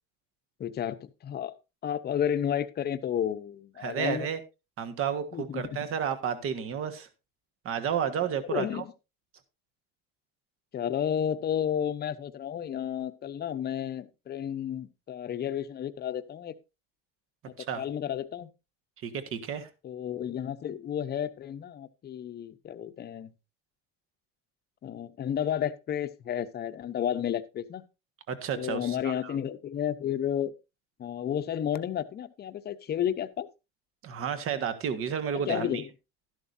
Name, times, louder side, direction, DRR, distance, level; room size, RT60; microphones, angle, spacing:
voice 1, 0.6-1.5 1.8-4.3 5.3-5.8 8.1-8.9 10.7-16.6 17.4-18.5 19.8-23.3 24.8-27.8 28.5-30.5 31.0-33.5 35.3-35.9, left 9 dB, 35° left, 11 dB, 0.8 m, -32 dB
voice 2, 3.8-4.4 4.8-7.1 7.6-8.8 17.6-17.8 19.0-19.7 28.3-29.3 34.0-35.8, right 8 dB, 50° right, 9 dB, 1.5 m, -31 dB
12.5 x 11.0 x 2.7 m, 0.26 s
cardioid pair, 135°, 29 cm